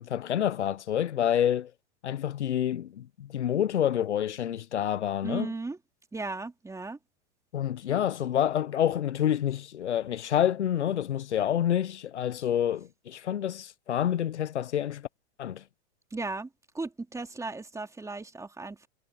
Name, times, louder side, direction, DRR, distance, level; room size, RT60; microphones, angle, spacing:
voice 1, 0.0-1.7 2.0-5.5 7.5-15.0 15.4-15.6, left 10 dB, 90° left, 0.9 m, -28 dB
voice 2, 5.2-5.8 6.1-7.0 16.1-16.5 16.7-18.9, right 3 dB, 10° right, 2.9 m, -36 dB
hypercardioid pair, 110°, 34 cm